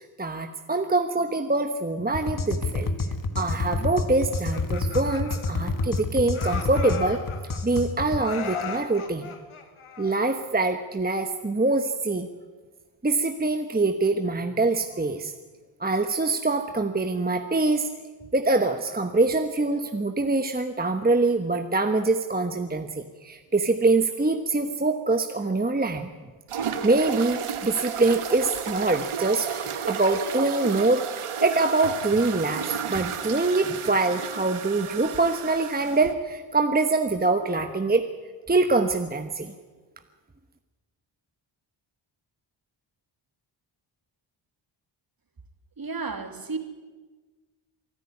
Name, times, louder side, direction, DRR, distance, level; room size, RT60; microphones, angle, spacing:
voice 1, 0.0-2.9 3.3-7.2 7.6-9.3 10.0-12.3 13.0-15.3 15.8-17.9 18.3-26.1 26.8-29.5 29.9-31.1 31.4-38.0 38.5-39.5, right 3 dB, 20° right, 7 dB, 1.1 m, -24 dB
sound 1, 2.1-8.2, left 3 dB, 40° left, 1.6 m, -29 dB
Laughter, 4.3-6.0 6.3-7.8 8.2-10.5, left 6 dB, 80° left, 2.3 m, -37 dB
sound 2, 26.5-36.1, right 7 dB, 80° right, 1.4 m, -33 dB
voice 2, 45.8-46.6, right 4 dB, 45° right, 6 dB, 2.7 m, -32 dB
23.5 x 11.5 x 9.6 m, 1.4 s
cardioid pair, 70°, 49 cm